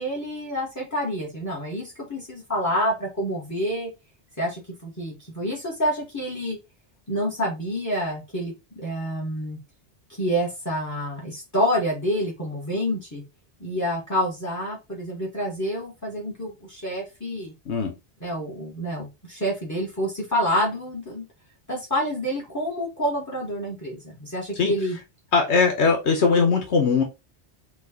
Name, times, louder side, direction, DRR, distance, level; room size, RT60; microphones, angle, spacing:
voice 1, 0.0-3.9 4.4-6.6 7.1-9.6 10.1-13.2 13.6-17.5 18.2-21.2 21.7-25.0, equal, 15° left, 1.4 m, -28 dB
voice 2, 25.3-27.0, left 4 dB, 80° left, 1.3 m, -20 dB
4.5 x 2.5 x 4.2 m
omnidirectional pair, 1.1 m